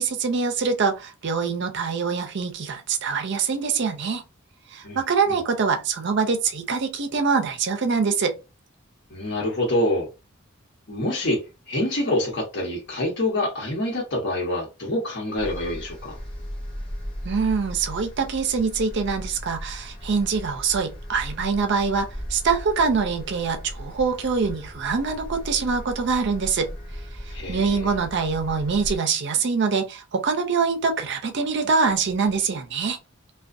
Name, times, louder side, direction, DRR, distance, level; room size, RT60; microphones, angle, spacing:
voice 1, 0.0-4.2 4.7-8.4 17.2-26.7 27.5-33.0, right 5 dB, 55° right, 0.5 m, -24 dB
voice 2, 9.1-10.1 10.9-16.2 27.3-27.9, left 1 dB, 55° left, 1.1 m, -26 dB
sound 1, 15.4-29.0, equal, 25° left, 0.8 m, -37 dB
2.4 x 2.2 x 2.5 m
head